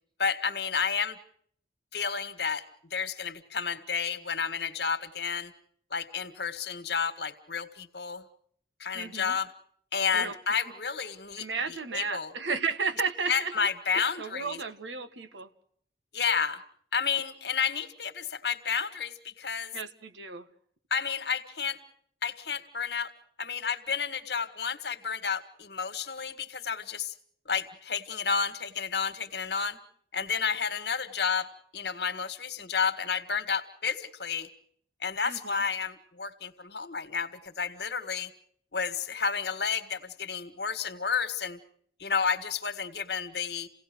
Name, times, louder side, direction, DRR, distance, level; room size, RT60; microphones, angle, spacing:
voice 1, 0.2-1.2 1.9-2.7 2.9-5.5 5.9-8.2 8.8-9.5 9.9-12.3 13.3-14.6 16.1-16.6 16.9-19.7 20.9-21.8 22.2-23.1 23.4-27.1 27.5-29.8 30.1-34.5 35.0-38.3 38.7-41.6 42.0-43.7, left 6 dB, 70° left, 9 dB, 1.8 m, -31 dB
voice 2, 8.9-9.4 10.1-10.3 11.4-13.7 13.9-15.5 19.7-20.5 35.3-35.6, right 4 dB, 90° right, 10 dB, 1.6 m, -33 dB
29.0 x 17.5 x 6.2 m, 0.63 s
head